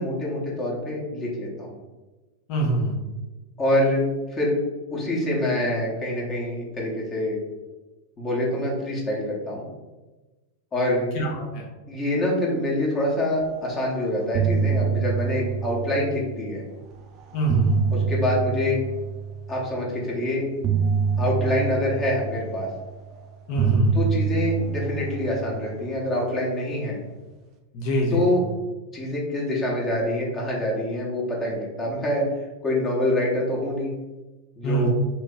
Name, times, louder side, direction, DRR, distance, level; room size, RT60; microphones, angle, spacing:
voice 1, 0.0-1.7 3.6-4.0 4.3-4.5 4.9-7.4 8.2-9.6 10.7-11.1 11.9-16.6 17.9-18.8 19.5-20.5 21.2-22.7 23.9-27.0 28.1-28.4 28.9-32.2 32.6-33.9 34.6-34.9, left 1 dB, 25° left, -3 dB, 1.0 m, -25 dB
voice 2, 2.5-3.0 11.1-11.3 11.5-11.6 17.3-17.8 23.5-24.0 27.7-28.2 34.6-34.9, right 1 dB, 45° left, -2 dB, 0.7 m, -23 dB
sound 1, 13.7-13.9 14.2-16.5 17.2-19.6 20.6-23.1 23.6-26.1, right 6 dB, 35° right, 0.5 m, -26 dB
2.9 x 2.8 x 3.6 m, 1.2 s
figure-of-eight pair, 90°, 0 cm